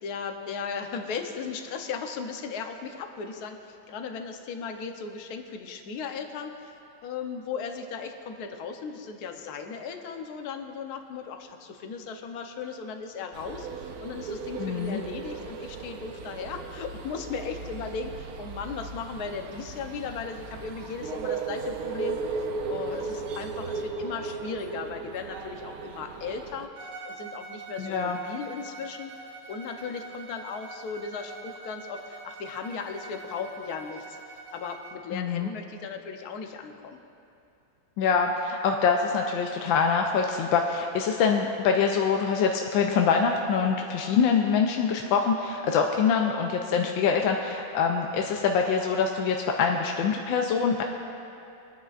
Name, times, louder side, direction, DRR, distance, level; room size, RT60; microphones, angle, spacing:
voice 1, 0.0-22.2 22.7-26.7 27.0-29.1 29.5-34.2 34.5-37.0, left 5 dB, 60° left, 5 dB, 1.1 m, -37 dB
sound 1, 13.3-26.7, right 4 dB, 80° right, 0.8 m, -36 dB
voice 2, 14.6-15.0 27.8-28.2 35.1-35.5 38.0-50.8, left 6 dB, 75° left, 2 dB, 1.3 m, -24 dB
Bowed string instrument, 26.7-35.1, right 3 dB, 45° right, 1.1 m, -44 dB
23.5 x 9.9 x 2.5 m, 2.7 s
omnidirectional pair, 2.3 m